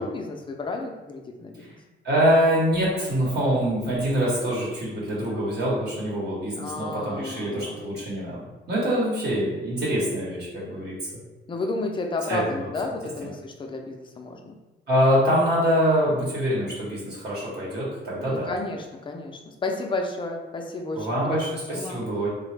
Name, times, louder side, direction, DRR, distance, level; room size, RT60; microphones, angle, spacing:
voice 1, 0.0-1.7 6.6-7.8 11.5-14.6 18.2-21.4 21.7-22.0, left 2 dB, 25° left, 3 dB, 0.4 m, -32 dB
voice 2, 2.0-8.4 8.7-11.0 12.3-12.4 13.2-13.3 14.9-18.5 20.9-22.3, equal, 55° right, -7 dB, 1.0 m, -24 dB
2.9 x 2.1 x 3.2 m, 1.1 s
cardioid pair, 90°, 20 cm